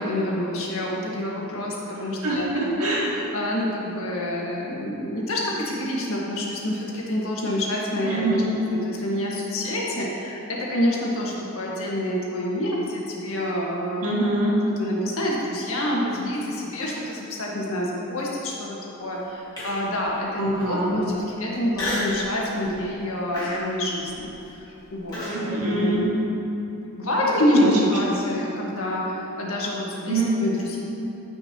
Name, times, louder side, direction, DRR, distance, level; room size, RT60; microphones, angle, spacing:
voice 1, 0.0-2.4 3.1-8.4 8.7-14.0 14.8-21.0 21.4-24.6 24.9-26.0 27.0-27.6 27.9-30.8, left 1 dB, 70° left, -4 dB, 1.7 m, -27 dB
voice 2, 2.2-3.1 8.0-8.5 14.0-14.6 20.4-20.9 25.2-26.1 27.4-27.7 30.1-30.3, right 2 dB, 85° right, -5 dB, 2.0 m, -24 dB
Human voice, 19.6-20.0 20.5-20.6 21.7-22.2 22.6-22.9 23.3-25.4, left 1 dB, 15° left, 1.9 m, -31 dB
15.5 x 5.6 x 3.0 m, 2.9 s
head